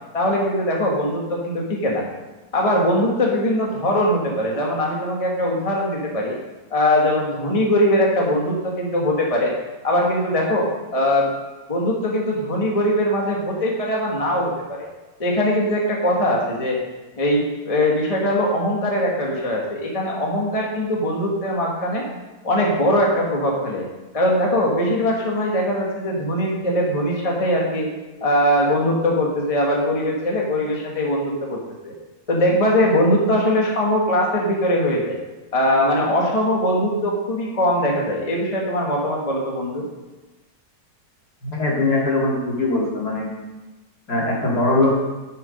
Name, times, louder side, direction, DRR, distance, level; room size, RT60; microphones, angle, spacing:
voice 1, 0.1-2.0 2.5-6.3 6.7-9.5 9.8-11.3 11.7-14.9 15.2-16.8 17.2-22.1 22.4-23.9 24.1-27.9 28.2-31.6 31.8-31.9 32.3-35.2 35.5-39.8, left 1 dB, 20° left, -2 dB, 1.3 m, -21 dB
voice 2, 41.4-43.3 44.1-45.0, left 2 dB, 60° left, -4 dB, 2.9 m, -21 dB
10.5 x 5.9 x 5.2 m, 1.1 s
omnidirectional pair, 2.0 m